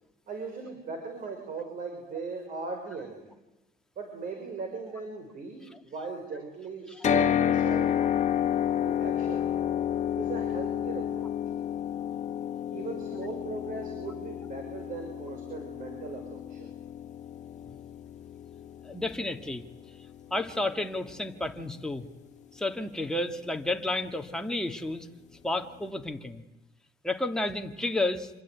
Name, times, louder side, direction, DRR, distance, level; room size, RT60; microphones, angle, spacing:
voice 1, 0.3-3.3 4.0-7.9 8.8-9.5 10.2-11.3 12.7-16.7, right 4 dB, 55° right, 4 dB, 5.7 m, -39 dB
sound 1, 7.0-21.2, left 9 dB, 45° left, 1.7 m, -31 dB
voice 2, 18.8-19.6 20.3-22.0 22.5-25.1 25.4-26.4 27.0-28.3, left 2 dB, 5° left, 4 dB, 2.0 m, -31 dB
26.5 x 23.0 x 9.5 m, 1.0 s
cardioid pair, 110°, 17 cm